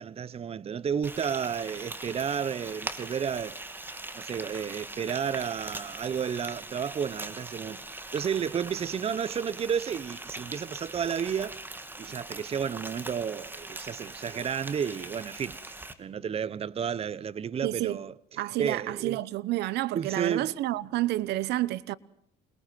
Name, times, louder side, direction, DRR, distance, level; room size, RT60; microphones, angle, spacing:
voice 1, 0.0-3.6 4.1-11.6 12.0-18.1 18.6-19.2 19.9-20.6, right 7 dB, 35° right, 1.0 m, -32 dB
Frying (food), 1.0-15.9, right 2 dB, 10° right, 2.7 m, -41 dB
voice 2, 17.6-18.0 18.4-21.9, right 16 dB, 80° right, 1.1 m, -29 dB
28.0 x 22.5 x 7.6 m
cardioid pair, 110°, 17 cm